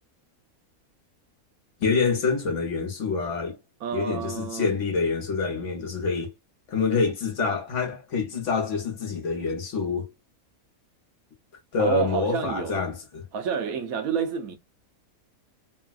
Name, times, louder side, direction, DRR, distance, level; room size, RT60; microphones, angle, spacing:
voice 1, 1.8-3.6 3.9-6.3 6.7-10.1 11.7-13.2, left 4 dB, 60° left, 1.3 m, -26 dB
voice 2, 3.8-4.7 11.8-12.8 13.3-14.6, right 7 dB, 80° right, 1.1 m, -29 dB
3.1 x 2.3 x 2.3 m
omnidirectional pair, 1.5 m